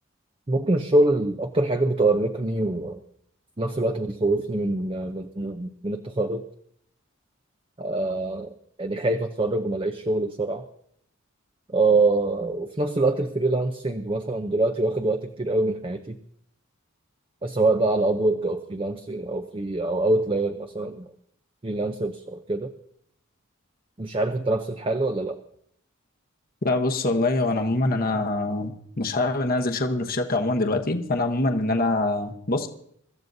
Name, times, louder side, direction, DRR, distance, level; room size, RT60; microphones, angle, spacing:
voice 1, 0.5-3.0 3.6-6.4 7.8-8.5 8.8-10.6 11.7-16.2 17.4-21.1 21.6-22.7 24.0-25.4, right 2 dB, 25° right, 0.6 m, -24 dB
voice 2, 26.6-32.7, left 2 dB, 45° left, 1.0 m, -24 dB
24.5 x 13.5 x 2.7 m
head